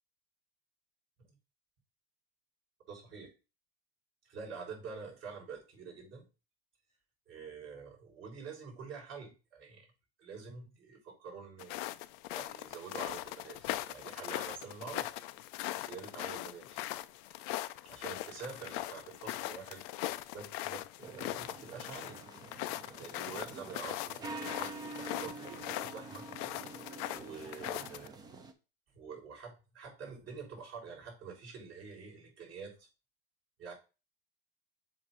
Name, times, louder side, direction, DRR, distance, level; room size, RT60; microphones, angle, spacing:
voice 1, 2.9-3.3 4.3-6.3 7.3-9.9 10.2-11.8 12.3-15.1 15.8-16.8 17.3-19.8 20.3-22.2 22.9-26.3 27.1-28.2 28.9-32.9 33.6-33.7, right 5 dB, 40° right, -2 dB, 4.2 m, -47 dB
sound 1, 11.6-28.1, left 16 dB, 40° left, 0.4 m, -40 dB
sound 2, 21.0-28.5, right 3 dB, 10° right, 0.6 m, -47 dB
7.7 x 2.7 x 5.5 m, 0.30 s
supercardioid pair, 145°, 32 cm